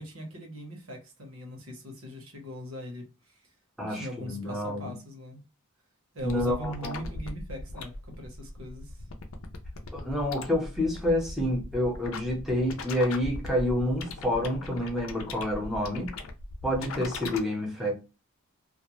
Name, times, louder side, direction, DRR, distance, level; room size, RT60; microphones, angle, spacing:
voice 1, 0.0-3.0 3.9-5.4 6.1-9.0, equal, 75° right, 1.0 m, -40 dB
voice 2, 3.8-4.9 6.2-7.0 9.9-16.1 16.6-17.9, left 1 dB, ahead, 0.7 m, -28 dB
sound 1, 6.2-17.4, left 3 dB, 70° left, 0.5 m, -40 dB
2.5 x 2.1 x 3.0 m
head